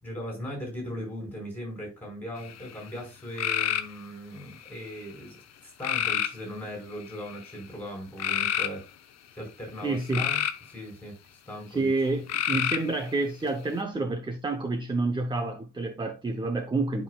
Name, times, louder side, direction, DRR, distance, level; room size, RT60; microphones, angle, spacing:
voice 1, 0.0-8.8 9.3-10.4 10.7-11.2 11.5-11.9, equal, 5° left, 4.6 m, -38 dB
sound 1, 2.4-2.8 3.4-3.9 4.6-5.1 5.8-6.4 7.1-7.5 8.2-8.7 9.8-10.6 12.3-13.0, left 10 dB, 60° left, 0.8 m, -28 dB
voice 2, 9.8-10.3 11.7-17.0, right 2 dB, 15° right, 0.7 m, -29 dB
11.5 x 5.4 x 2.3 m
cardioid pair, 150°, 30 cm